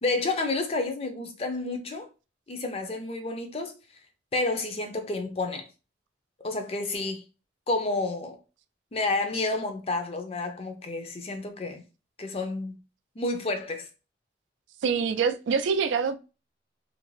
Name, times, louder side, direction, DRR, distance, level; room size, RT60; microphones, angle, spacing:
voice 1, 0.0-2.1 2.5-3.7 4.3-5.7 6.4-7.2 7.7-8.4 8.9-11.8 12.2-12.8 13.2-13.9, left 2 dB, 35° left, 0.4 m, -30 dB
voice 2, 14.8-16.2, right 6 dB, 90° right, 0.3 m, -25 dB
2.5 x 2.0 x 3.1 m
head